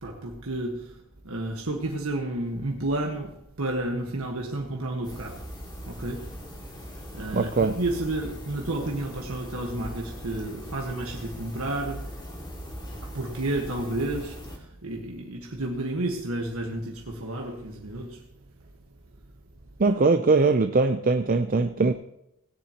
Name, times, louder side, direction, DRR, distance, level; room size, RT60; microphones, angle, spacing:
voice 1, 0.0-5.4 5.9-6.3 7.1-12.1 13.0-18.2, right 1 dB, 85° right, 0 dB, 1.5 m, -31 dB
sound 1, 5.0-14.6, equal, 20° left, 2.2 m, -40 dB
voice 2, 7.3-7.8 19.8-21.9, right 3 dB, 40° right, 8 dB, 0.5 m, -21 dB
17.0 x 10.0 x 3.0 m, 0.83 s
head